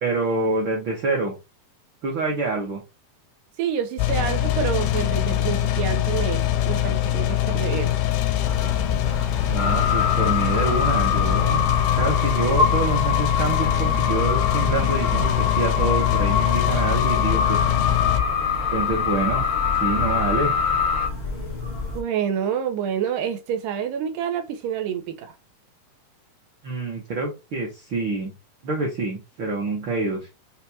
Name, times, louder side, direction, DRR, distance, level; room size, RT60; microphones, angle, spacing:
voice 1, 0.0-1.3 2.0-2.8 9.4-17.8 18.7-19.5 19.8-20.5 26.6-28.3 28.6-30.3, right 3 dB, 75° right, 1.1 m, -26 dB
voice 2, 3.6-8.0 21.9-25.3, right 8 dB, 90° right, 2.4 m, -28 dB
sound 1, 4.0-18.2, left 12 dB, 90° left, 2.3 m, -23 dB
sound 2, 8.4-22.0, left 2 dB, 45° left, 0.7 m, -32 dB
sound 3, 9.6-21.1, left 7 dB, 75° left, 1.2 m, -25 dB
6.4 x 2.3 x 2.7 m
omnidirectional pair, 3.7 m